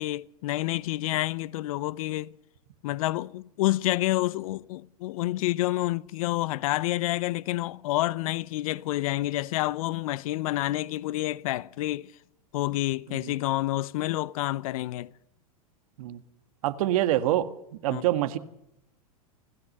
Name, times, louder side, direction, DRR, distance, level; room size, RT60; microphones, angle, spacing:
voice 1, 0.0-2.3 2.8-12.1 12.5-15.1 17.9-18.0, left 17 dB, 65° left, 0.8 m, -28 dB
voice 2, 16.6-17.5 17.8-18.4, right 14 dB, 65° right, 1.8 m, -26 dB
29.5 x 14.0 x 6.7 m
hypercardioid pair, 115°, 19 cm